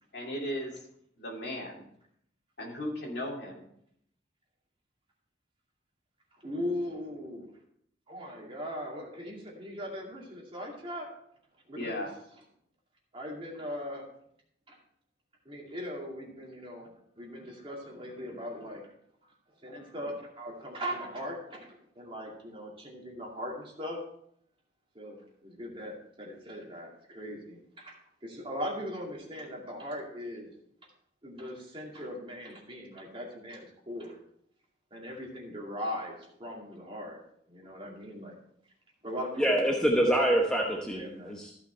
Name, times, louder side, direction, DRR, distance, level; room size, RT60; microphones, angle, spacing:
voice 1, 0.1-0.7 1.2-1.8 2.6-3.7 11.7-12.1, left 1 dB, 65° left, -2 dB, 2.9 m, -36 dB
voice 2, 6.4-7.5 8.1-11.1 11.7-12.1 13.1-14.0 14.7-14.8 15.5-18.9 19.2-19.3 19.6-21.7 22.0-24.0 24.9-27.9 28.2-30.5 31.2-34.2 34.9-37.2 37.5-38.4 39.0-39.8 40.5-41.3, equal, 30° right, -2 dB, 2.4 m, -39 dB
voice 3, 39.4-41.5, right 1 dB, 5° left, -1 dB, 1.0 m, -26 dB
14.0 x 5.8 x 4.4 m, 0.71 s
head